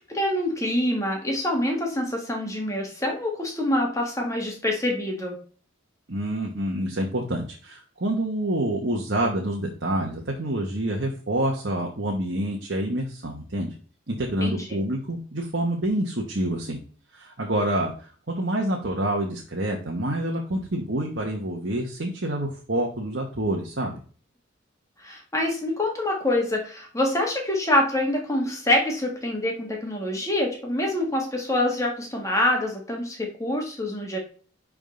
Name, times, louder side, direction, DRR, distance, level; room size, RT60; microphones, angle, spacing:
voice 1, 0.1-5.4 14.4-14.8 25.0-34.2, left 1 dB, 15° left, 1 dB, 1.5 m, -26 dB
voice 2, 6.1-13.7 14.1-16.8 17.1-24.0, right 1 dB, 55° right, 0 dB, 1.1 m, -27 dB
10.5 x 3.7 x 3.8 m, 0.42 s
head